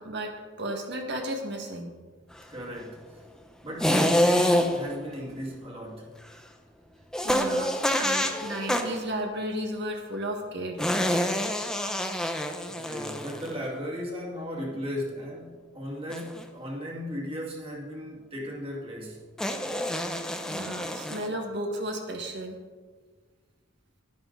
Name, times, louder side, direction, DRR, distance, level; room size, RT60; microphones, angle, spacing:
voice 1, 0.0-2.0 7.2-11.0 20.5-22.6, right 1 dB, 55° right, 3 dB, 1.7 m, -34 dB
voice 2, 2.5-3.2 3.6-6.2 12.7-19.2, equal, 30° right, -2 dB, 2.1 m, -36 dB
sound 1, 3.8-4.9 7.1-9.0 10.8-13.6 16.1-16.4 19.4-21.3, equal, 5° left, 0.7 m, -27 dB
11.5 x 10.5 x 4.0 m, 1.5 s
head